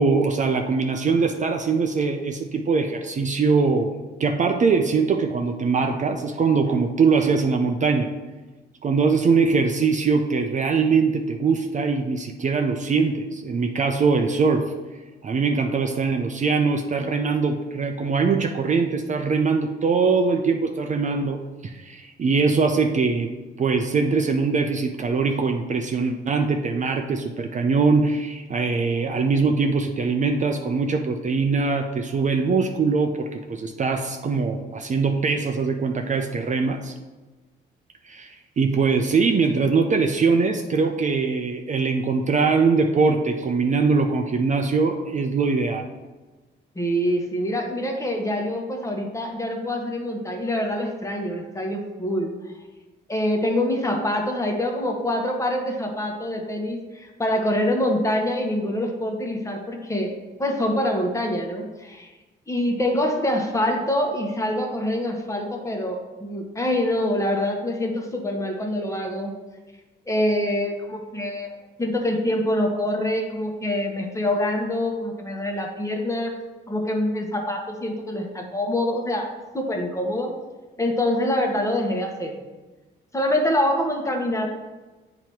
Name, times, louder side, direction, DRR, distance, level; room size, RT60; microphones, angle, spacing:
voice 1, 0.0-8.1 8.8-14.7 15.2-23.3 23.6-36.9 38.0-45.9, right 4 dB, 40° right, 4 dB, 0.5 m, -22 dB
voice 2, 46.7-52.3 53.1-60.1 60.4-62.1 62.5-69.3 70.1-76.3 76.7-80.3 80.8-82.4 83.1-84.5, left 1 dB, 15° left, 2 dB, 1.1 m, -25 dB
8.5 x 3.0 x 4.5 m, 1.2 s
cardioid pair, 90°, 20 cm